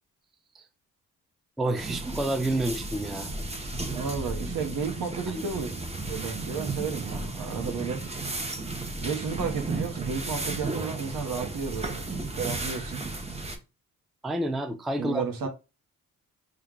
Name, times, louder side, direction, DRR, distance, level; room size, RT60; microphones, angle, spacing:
voice 1, 1.6-3.3 5.3-5.5 14.2-15.5, right 1 dB, ahead, 0.4 m, -29 dB
sound 1, 1.8-13.6, right 3 dB, 15° right, 0.8 m, -34 dB
voice 2, 3.9-5.7 6.1-8.0 9.0-13.0 15.0-15.5, right 5 dB, 65° right, 1.0 m, -32 dB
3.2 x 2.4 x 3.7 m
supercardioid pair, 60°, 36 cm